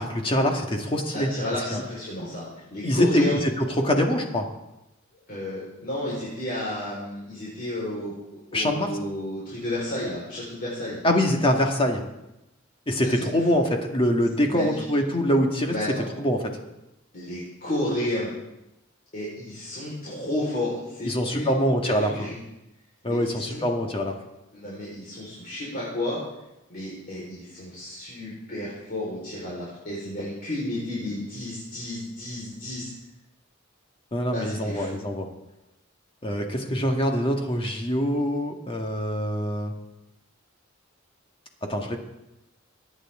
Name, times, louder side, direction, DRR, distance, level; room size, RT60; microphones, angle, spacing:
voice 1, 0.0-1.3 1.7-1.8 2.8-4.5 8.5-8.9 11.0-12.0 12.9-15.8 16.2-16.4 21.0-22.1 23.0-24.1 34.1-35.3 36.2-39.7 41.6-42.0, equal, 25° left, 2 dB, 1.7 m, -24 dB
voice 2, 1.1-3.4 5.3-11.0 13.0-13.2 13.5-13.6 14.5-14.7 15.7-16.1 17.1-18.3 19.1-21.6 21.8-22.4 23.0-23.6 24.5-26.2 26.7-32.9 34.3-35.0, left 1 dB, 45° left, -7 dB, 4.5 m, -32 dB
23.5 x 9.7 x 3.7 m, 0.93 s
head